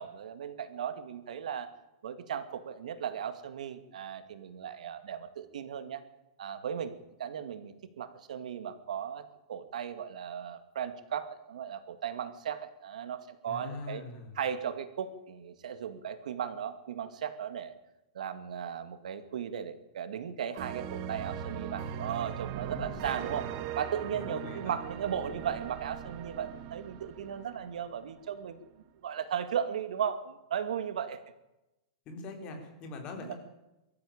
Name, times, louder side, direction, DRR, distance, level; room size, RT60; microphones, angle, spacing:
voice 1, 0.0-1.7 2.0-6.0 6.4-6.9 7.2-14.0 14.4-17.7 18.1-28.6 29.0-31.2 33.1-33.3, right 8 dB, 80° right, 10 dB, 2.2 m, -36 dB
voice 2, 13.5-14.4 22.7-23.1 24.1-24.8 32.1-33.3, left 3 dB, 25° left, 4 dB, 4.0 m, -43 dB
sound 1, 20.6-28.2, right 9 dB, 35° right, 1.5 m, -40 dB
23.0 x 14.0 x 8.8 m, 0.96 s
supercardioid pair, 170°, 4 cm